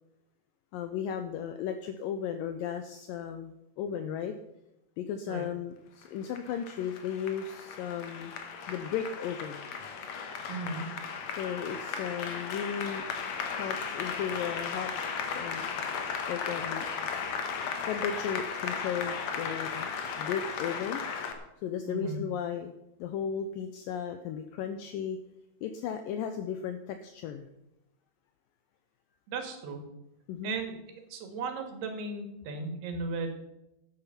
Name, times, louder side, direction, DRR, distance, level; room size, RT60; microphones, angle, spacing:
voice 1, 0.7-4.3 5.0-8.3 8.7-9.6 11.3-13.0 13.5-14.9 15.3-15.7 16.3-16.8 17.9-19.9 20.2-21.0 21.6-22.7 23.0-25.2 25.6-27.5 30.3-30.6, left 8 dB, 80° left, 8 dB, 2.2 m, -35 dB
Applause, 6.0-21.3, left 6 dB, 60° left, 1.9 m, -36 dB
voice 2, 10.5-10.8 21.9-22.2 29.3-29.8 30.4-30.8 31.1-33.3, right 3 dB, 90° right, 5 dB, 3.8 m, -36 dB
12.5 x 9.0 x 5.7 m, 0.90 s
omnidirectional pair, 4.5 m